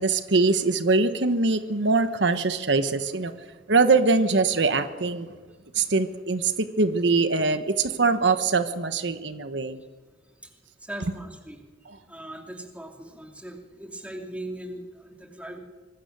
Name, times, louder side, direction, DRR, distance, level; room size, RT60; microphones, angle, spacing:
voice 1, 0.0-3.3 3.7-5.3 5.7-9.8, right 3 dB, 70° right, 10 dB, 1.1 m, -23 dB
voice 2, 10.8-11.6 12.1-15.6, right 1 dB, 5° right, 2 dB, 2.7 m, -39 dB
25.0 x 20.5 x 6.8 m, 1.4 s
head